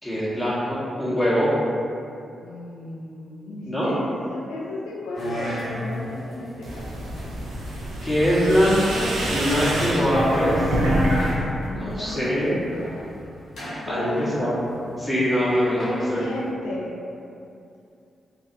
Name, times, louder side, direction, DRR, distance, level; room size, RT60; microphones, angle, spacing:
voice 1, 0.0-1.5 3.6-3.9 8.0-10.8 11.7-12.6 13.9-14.6 15.0-16.2, equal, 10° left, -10 dB, 1.2 m, -23 dB
voice 2, 2.4-6.9 11.6-13.1 13.8-14.5 15.8-17.0, left 1 dB, 90° left, -5 dB, 0.3 m, -33 dB
sound 1, 5.1-16.5, equal, 70° left, 0.9 m, -35 dB
sound 2, 6.6-11.3 11.6-12.3, right 1 dB, 80° right, 0.4 m, -26 dB
2.6 x 2.4 x 2.6 m, 2.6 s
hypercardioid pair, 40°, 0 cm